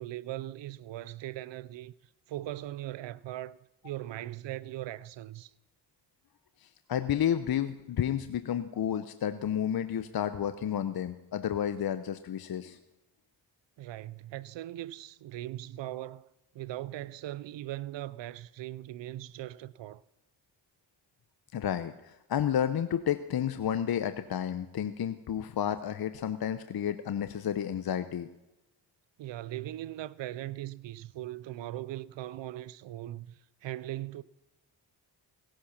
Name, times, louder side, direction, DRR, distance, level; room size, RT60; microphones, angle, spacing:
voice 1, 0.0-1.9 2.3-3.6 3.8-5.5 13.8-20.0 29.2-34.2, right 14 dB, 80° right, 0.7 m, -39 dB
voice 2, 6.9-12.8 21.5-28.3, left 9 dB, 55° left, 0.9 m, -31 dB
17.0 x 10.0 x 5.9 m
cardioid pair, 65°, 44 cm